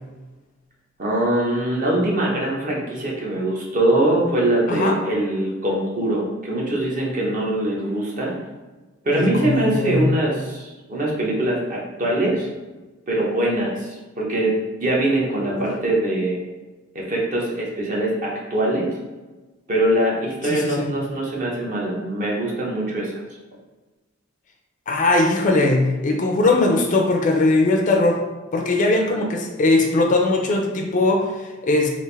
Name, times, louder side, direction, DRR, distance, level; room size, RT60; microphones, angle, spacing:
voice 1, 1.0-8.3 9.0-12.5 13.1-16.4 16.9-18.9 19.7-23.1 29.1-29.3, right 1 dB, 40° right, -3 dB, 0.8 m, -22 dB
voice 2, 9.1-10.0 15.4-15.6 20.5-20.9 24.9-28.2 28.5-31.9, left 2 dB, 40° left, 2 dB, 0.4 m, -20 dB
3.4 x 2.5 x 3.2 m, 1.2 s
head